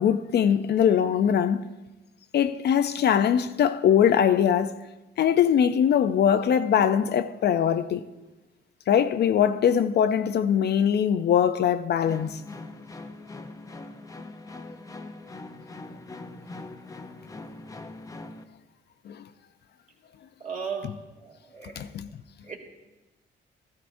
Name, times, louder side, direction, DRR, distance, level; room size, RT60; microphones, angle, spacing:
voice 1, 0.0-1.7 2.3-4.8 5.2-8.0 8.9-12.4 19.1-19.2 21.8-22.1, left 8 dB, 55° left, 0.5 m, -22 dB
sound 1, 12.1-18.4, left 2 dB, 15° left, 0.6 m, -42 dB
voice 2, 20.4-20.9 21.2-21.8 22.5-22.6, right 6 dB, 40° right, 2.0 m, -36 dB
14.5 x 12.5 x 2.6 m
cardioid pair, 90°, 20 cm